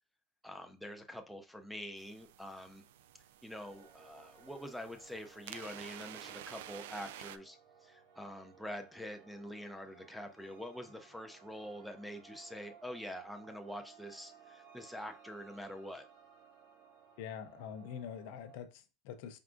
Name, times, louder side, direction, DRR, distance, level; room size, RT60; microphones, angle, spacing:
voice 1, 0.4-2.8 3.4-16.1, equal, ahead, 0.5 m, -46 dB
sound 1, 2.0-7.4, right 12 dB, 85° right, 0.3 m, -51 dB
sound 2, 3.5-18.6, right 7 dB, 65° right, 2.0 m, -60 dB
voice 2, 17.2-19.4, left 8 dB, 70° left, 0.6 m, -45 dB
4.6 x 3.7 x 2.4 m
supercardioid pair, 135°, 0 cm